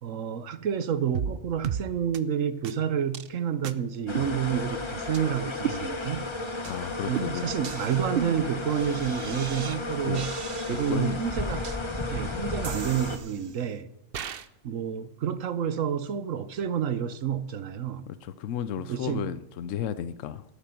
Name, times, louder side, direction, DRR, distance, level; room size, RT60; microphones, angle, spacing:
voice 1, 0.0-6.3 7.1-10.3 10.7-11.7 12.1-13.9 14.6-18.1 18.8-19.3, right 8 dB, 90° right, 1.3 m, -29 dB
sound 1, 1.1-1.4 1.6-1.8 2.1-2.2 2.6-2.7 3.1-3.3 3.6-3.7 4.1-4.8 5.1-5.2 5.6-6.3 6.6-6.8 7.1-9.8 10.1-11.1 11.6-11.8 12.6-13.6 14.1-14.5, right 8 dB, 55° right, 0.8 m, -35 dB
sound 2, 4.1-13.2, left 2 dB, 25° left, 1.1 m, -33 dB
voice 2, 6.6-7.5 10.0-10.3 10.7-11.2 12.3-12.4 18.1-20.4, left 9 dB, 80° left, 1.0 m, -33 dB
13.5 x 12.0 x 5.9 m
omnidirectional pair, 1.3 m